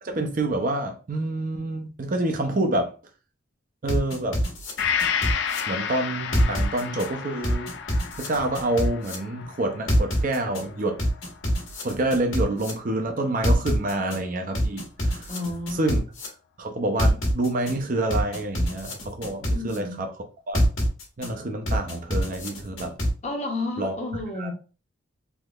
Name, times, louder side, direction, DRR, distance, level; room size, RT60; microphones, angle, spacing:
voice 1, 0.0-2.9 3.8-4.4 5.7-7.7 8.2-11.0 11.8-15.3 15.7-16.0 16.6-20.1 20.5-20.7 21.2-23.0 23.8-23.9 24.4-24.5, right 2 dB, 40° right, 0.5 m, -27 dB
sound 1, 3.9-5.6 6.3-7.1 7.4-9.1 9.9-10.6 11.0-12.7 13.4-14.2 14.5-16.3 17.0-17.7 18.1-19.8 20.5-21.3 21.7-23.1, equal, 80° left, 1.3 m, -25 dB
Gong, 4.8-12.4 12.8-12.9, left 7 dB, 55° left, 0.3 m, -32 dB
voice 2, 15.3-15.9 19.5-20.1 23.2-24.5, left 2 dB, 35° left, 0.8 m, -31 dB
3.5 x 3.1 x 2.3 m
head